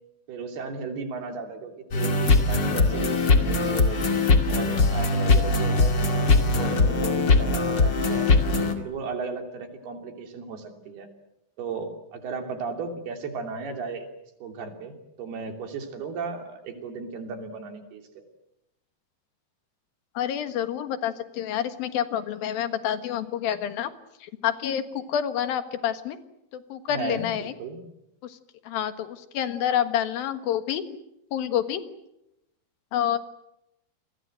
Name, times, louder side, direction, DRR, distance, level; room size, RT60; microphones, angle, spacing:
voice 1, 0.3-4.0 4.5-8.3 8.8-11.1 11.6-14.1 14.4-18.2 26.9-27.8, right 4 dB, 80° right, 5 dB, 5.0 m, -35 dB
sound 1, 1.9-8.7, left 3 dB, 35° left, 2.3 m, -21 dB
voice 2, 20.1-23.9 24.2-26.2 26.5-27.5 28.2-28.4 28.7-30.9 31.3-31.8 32.9-33.2, left 10 dB, 70° left, 10 dB, 3.2 m, -28 dB
29.0 x 23.0 x 7.7 m, 0.84 s
omnidirectional pair, 4.5 m